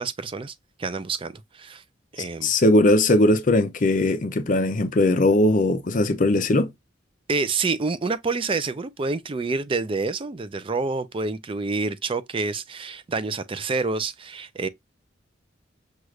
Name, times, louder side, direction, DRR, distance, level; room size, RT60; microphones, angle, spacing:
voice 1, 0.0-1.8 2.1-2.5 7.3-14.7, right 4 dB, 30° right, 0.4 m, -28 dB
voice 2, 2.4-6.7, left 1 dB, 45° left, 0.6 m, -19 dB
6.2 x 2.4 x 3.1 m
head